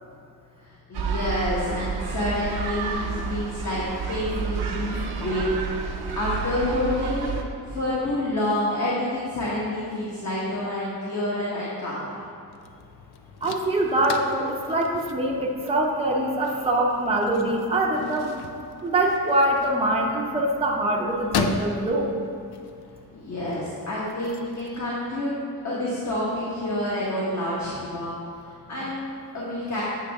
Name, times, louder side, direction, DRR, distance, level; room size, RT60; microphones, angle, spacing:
voice 1, 0.9-5.4 6.1-7.3 7.6-12.2 23.1-25.4 25.6-28.1 28.4-29.8, left 1 dB, 45° left, -8 dB, 1.3 m, -28 dB
sound 1, 0.9-7.4, right 5 dB, 90° right, 0.8 m, -30 dB
sound 2, 12.5-24.8, left 6 dB, 85° left, 0.5 m, -37 dB
voice 2, 13.4-18.4 18.8-22.1, right 1 dB, 15° right, -1 dB, 0.7 m, -24 dB
8.3 x 6.2 x 3.5 m, 2.4 s
wide cardioid pair, 170°, 38 cm